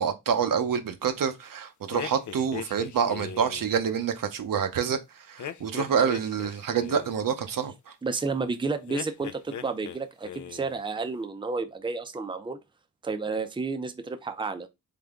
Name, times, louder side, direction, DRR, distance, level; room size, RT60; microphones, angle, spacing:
voice 1, 0.0-7.9, right 7 dB, 75° right, 0.7 m, -27 dB
sound 1, 1.9-3.8 5.4-7.2 8.9-10.0 10.2-10.8, left 8 dB, 60° left, 0.5 m, -39 dB
voice 2, 8.0-12.6 13.0-14.7, right 4 dB, 15° right, 0.5 m, -31 dB
3.8 x 3.4 x 3.5 m
cardioid pair, 75°, 33 cm